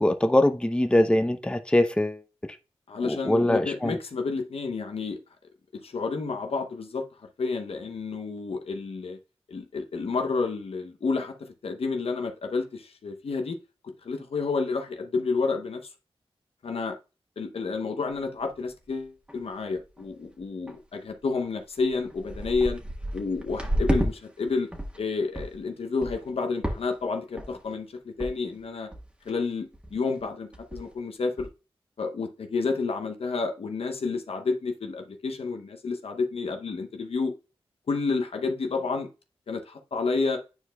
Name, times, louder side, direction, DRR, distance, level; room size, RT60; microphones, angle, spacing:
voice 1, 0.0-2.2 3.0-4.0, left 1 dB, 10° left, 0.7 m, -22 dB
voice 2, 2.9-5.2 5.8-7.0 7.4-9.2 9.5-13.6 13.8-15.8 16.6-17.0 17.4-22.8 23.1-24.7 25.0-28.9 29.2-31.5 32.0-37.3 37.9-39.1 39.5-40.4, left 4 dB, 75° left, 0.8 m, -30 dB
sound 1, 18.1-18.2 18.7-18.8 19.1-19.5 19.8-20.1 20.7-20.8 21.4-21.5 21.8-24.1 24.5-25.0 25.4-25.6 26.0-26.3 26.6-27.1 27.4-27.7 28.2-28.3 28.6-28.7 28.9-29.3 29.7-29.9 30.2-30.3 30.5-31.0 31.4-31.5, equal, 10° right, 1.4 m, -31 dB
9.6 x 4.5 x 2.3 m
cardioid pair, 55°, 10 cm